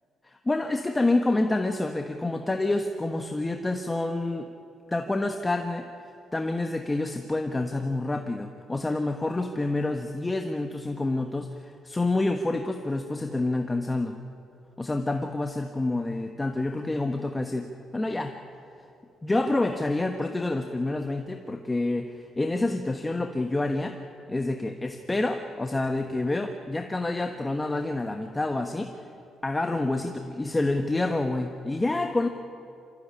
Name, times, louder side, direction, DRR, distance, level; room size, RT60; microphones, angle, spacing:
voice 1, 0.2-4.5 4.9-5.9 6.3-14.2 14.8-18.4 19.2-24.0 24.3-28.9 29.4-32.3, left 2 dB, 15° left, 5 dB, 1.3 m, -28 dB
25.0 x 15.5 x 10.0 m, 2.6 s
cardioid pair, 90°, 0 cm